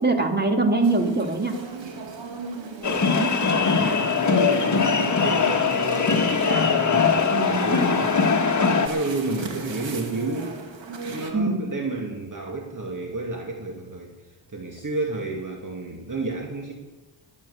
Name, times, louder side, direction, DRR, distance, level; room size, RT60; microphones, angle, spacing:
voice 1, 0.0-1.5 3.1-3.3 7.3-7.6 11.3-11.7, right 3 dB, 20° right, 4 dB, 2.6 m, -23 dB
sound 1, 0.8-11.3, right 4 dB, 80° right, 2.3 m, -38 dB
sound 2, 2.8-8.9, left 5 dB, 40° left, 1.7 m, -21 dB
voice 2, 3.5-8.3 8.8-10.6 11.0-14.1 14.5-16.7, right 3 dB, 45° right, 1 dB, 2.3 m, -31 dB
21.0 x 9.0 x 7.0 m, 1.1 s
cardioid pair, 80°, 44 cm